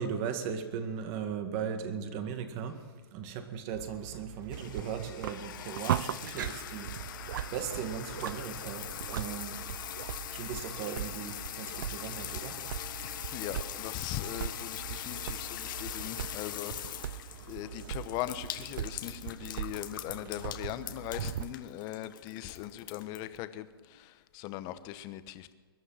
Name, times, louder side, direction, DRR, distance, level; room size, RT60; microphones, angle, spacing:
voice 1, 0.0-2.8 3.1-6.9 7.5-9.6 10.3-12.6 15.9-16.0 16.8-16.9, right 7 dB, 35° right, 7 dB, 1.9 m, -37 dB
sound 1, 3.7-21.5, right 11 dB, 55° right, 0.5 m, -40 dB
sound 2, 4.5-23.4, left 11 dB, 55° left, 1.4 m, -42 dB
voice 2, 13.0-25.5, left 13 dB, 30° left, 12 dB, 1.0 m, -40 dB
21.5 x 11.5 x 5.8 m, 1.5 s
hypercardioid pair, 135°, 13 cm